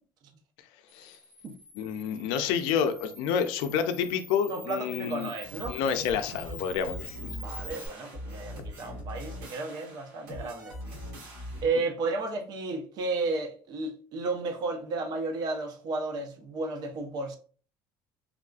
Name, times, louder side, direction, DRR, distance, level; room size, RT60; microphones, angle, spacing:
Camera, 0.9-7.9, left 3 dB, 15° left, 0.9 m, -46 dB
voice 1, 1.8-5.3 5.7-7.4, left 7 dB, 80° left, 0.4 m, -29 dB
voice 2, 4.5-5.8 7.2-10.8 11.6-17.4, right 3 dB, 50° right, 0.7 m, -33 dB
sound 1, 5.4-11.7, equal, 90° right, 1.5 m, -41 dB
3.4 x 2.4 x 2.3 m
cardioid pair, 130°, 8 cm